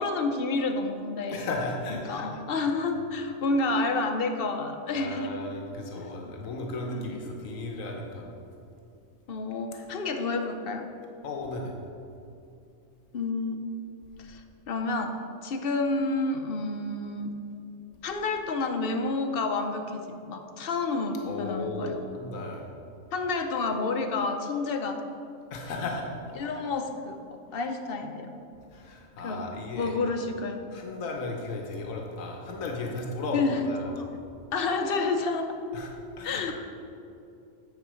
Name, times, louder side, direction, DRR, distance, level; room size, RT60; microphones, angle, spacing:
voice 1, 0.0-1.5 1.9-5.4 6.0-7.2 9.3-10.9 13.1-13.6 14.2-17.3 18.0-22.0 23.1-25.0 26.4-28.3 29.2-29.5 29.8-30.6 33.3-34.1 34.5-35.5 36.2-36.5, left 3 dB, 55° left, 5 dB, 0.8 m, -30 dB
voice 2, 1.3-2.2 4.9-8.3 11.2-11.7 21.2-22.7 25.5-26.1 28.7-29.9 30.7-33.9 35.7-35.9 36.2-36.5, left 2 dB, 85° left, 1 dB, 1.3 m, -35 dB
9.5 x 4.5 x 6.2 m, 2.6 s
omnidirectional pair, 1.4 m